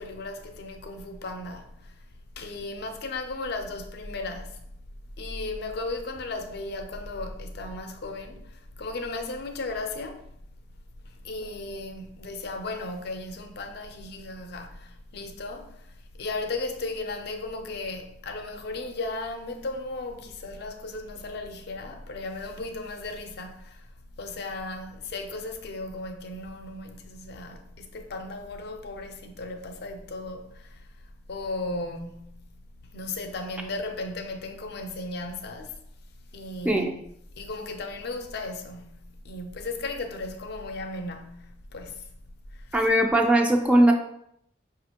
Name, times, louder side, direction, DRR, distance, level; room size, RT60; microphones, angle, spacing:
voice 1, 0.0-2.0 2.4-4.7 5.2-10.3 11.0-23.9 24.2-30.9 31.3-35.8 36.3-37.0 37.4-42.1 42.5-42.8, left 2 dB, 65° left, 0.5 m, -36 dB
voice 2, 42.7-43.9, right 1 dB, 5° right, 0.4 m, -19 dB
5.0 x 2.5 x 2.8 m
head